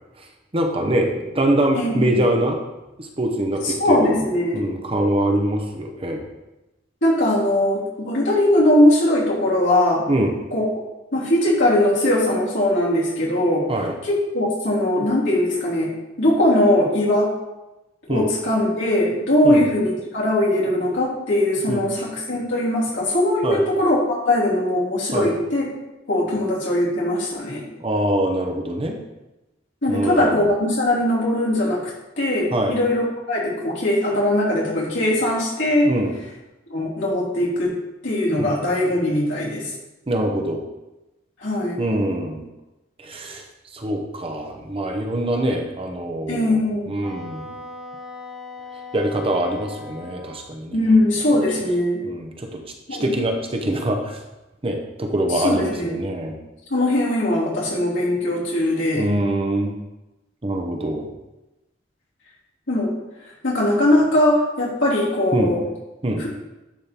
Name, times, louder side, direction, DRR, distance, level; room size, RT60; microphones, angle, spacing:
voice 1, 0.5-2.6 3.0-4.2 4.5-6.2 10.1-10.4 13.7-13.9 18.1-18.3 19.4-19.7 21.7-21.9 23.4-23.6 25.1-25.3 27.8-29.0 29.9-30.5 32.5-32.8 35.8-36.2 38.4-38.5 40.1-40.6 41.8-42.4 43.0-43.5 43.7-46.6 46.9-47.5 48.9-50.8 52.0-52.6 52.9-54.2 54.6-56.4 58.9-59.8 60.4-61.1 65.3-65.5 66.0-66.2, right 1 dB, 30° right, 3 dB, 0.8 m, -24 dB
voice 2, 1.7-2.2 3.6-4.6 7.0-10.0 10.5-10.7 11.1-13.7 14.0-15.9 16.2-17.3 18.1-25.7 26.1-27.6 29.8-31.8 32.2-35.9 36.7-37.7 38.0-39.6 41.4-41.8 46.3-46.9 50.7-52.0 52.9-53.1 55.4-56.0 56.7-59.1 62.7-62.9 63.4-65.6 66.2-66.3, left 1 dB, 80° left, -6 dB, 2.9 m, -20 dB
Wind instrument woodwind instrument, 47.0-50.5, left 3 dB, ahead, 1.0 m, -38 dB
10.0 x 3.7 x 4.4 m, 1.0 s
head